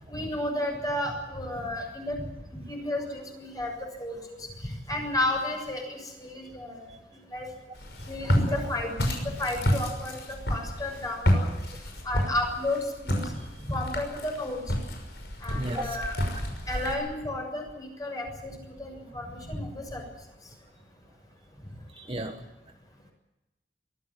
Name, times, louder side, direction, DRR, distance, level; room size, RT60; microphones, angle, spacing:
voice 1, 0.1-2.2 2.5-3.7 4.0-6.9 7.3-7.5 8.1-11.5 12.0-13.2 13.7-14.6 15.4-16.2 16.7-20.0, left 1 dB, 20° left, 2 dB, 6.9 m, -32 dB
Walk footsteps, 7.8-16.9, equal, 70° left, 6.0 m, -30 dB
voice 2, 15.5-16.3 21.9-22.3, right 1 dB, 30° right, 5 dB, 1.4 m, -35 dB
23.0 x 15.0 x 9.9 m, 1.0 s
head